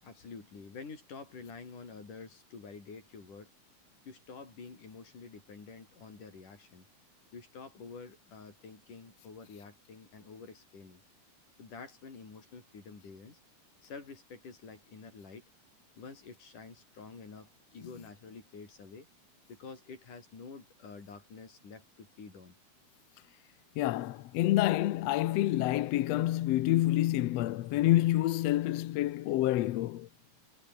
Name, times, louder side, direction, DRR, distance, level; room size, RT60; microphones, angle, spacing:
voice 1, 0.0-3.5 4.1-6.9 7.3-11.0 11.6-13.4 13.8-15.4 16.0-19.1 19.5-22.5, left 4 dB, 85° left, 7.1 m, -48 dB
voice 2, 23.8-30.1, left 15 dB, 70° left, 1.7 m, -28 dB
omnidirectional pair, 3.5 m